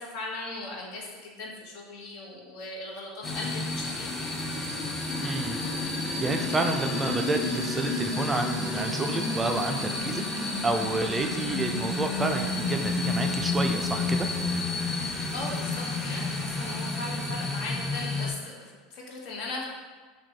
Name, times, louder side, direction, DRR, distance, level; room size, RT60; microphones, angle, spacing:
voice 1, 0.0-4.3 15.3-19.6, left 2 dB, 65° left, -1 dB, 0.9 m, -38 dB
sound 1, 3.2-18.3, left 2 dB, 20° left, 0.7 m, -30 dB
voice 2, 5.2-5.6 6.2-14.3, right 2 dB, 20° right, 4 dB, 0.3 m, -30 dB
5.8 x 2.2 x 2.8 m, 1.4 s
hypercardioid pair, 100°, 0 cm